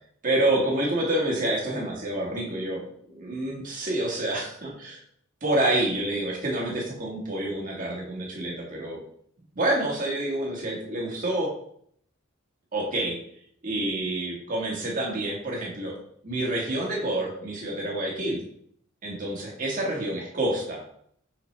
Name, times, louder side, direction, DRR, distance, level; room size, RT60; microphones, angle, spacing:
voice 1, 0.2-2.8 3.1-5.0 5.4-9.0 9.5-11.5 12.7-13.2 13.6-15.9 16.2-18.4 19.0-20.8, right 1 dB, 40° right, -2 dB, 1.6 m, -28 dB
6.1 x 5.8 x 3.3 m, 0.66 s
head